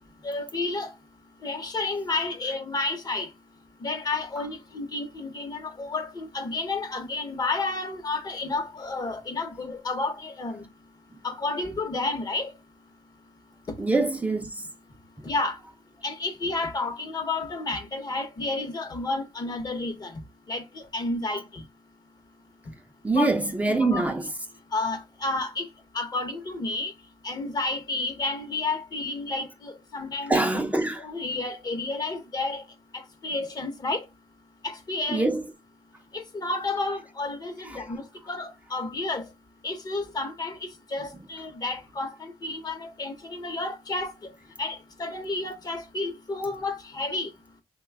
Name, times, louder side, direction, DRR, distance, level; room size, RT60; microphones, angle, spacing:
voice 1, 0.2-0.9 1.4-3.3 3.8-10.6 11.2-12.5 15.2-15.6 16.0-20.1 20.5-21.6 23.1-23.3 23.6-24.0 24.7-25.7 25.9-26.9 27.2-30.4 31.0-32.6 33.2-34.0 34.6-35.3 36.1-39.2 39.6-40.6 40.9-44.1 44.6-47.3, left 3 dB, 40° left, 0.8 m, -31 dB
voice 2, 13.8-14.7 23.0-24.3 30.3-31.0 35.1-35.4 37.7-37.8, right 2 dB, 15° right, 0.5 m, -24 dB
3.1 x 2.2 x 3.3 m
cardioid pair, 80°, 10 cm